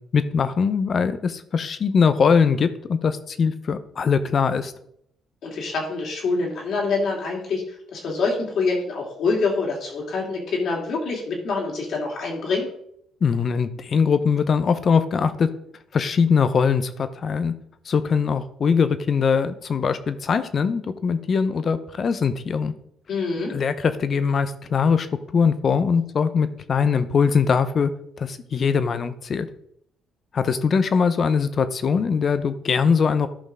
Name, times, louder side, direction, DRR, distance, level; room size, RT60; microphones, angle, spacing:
voice 1, 0.1-4.7 13.2-15.5 15.9-17.5 17.9-22.7 23.5-25.1 25.3-27.9 28.2-29.5 30.3-33.3, left 6 dB, 50° left, 12 dB, 0.8 m, -21 dB
voice 2, 5.4-12.7 23.1-23.5, left 4 dB, 65° left, -1 dB, 2.9 m, -25 dB
12.5 x 5.4 x 3.7 m, 0.71 s
supercardioid pair, 60°, 0 cm